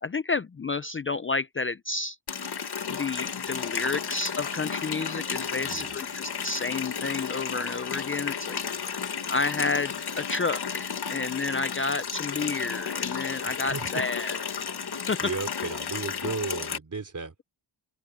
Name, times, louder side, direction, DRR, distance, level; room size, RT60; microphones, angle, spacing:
voice 1, 0.0-2.2 2.9-8.6 9.3-14.4 15.1-15.2, left 3 dB, 25° left, 0.6 m, -30 dB
Water tap faucet, 2.3-16.8, left 6 dB, 55° left, 1.9 m, -33 dB
voice 2, 5.6-6.0 13.4-14.0 14.8-15.0 15.2-17.4, right 4 dB, 40° right, 3.5 m, -35 dB
open air
cardioid pair, 85°, 47 cm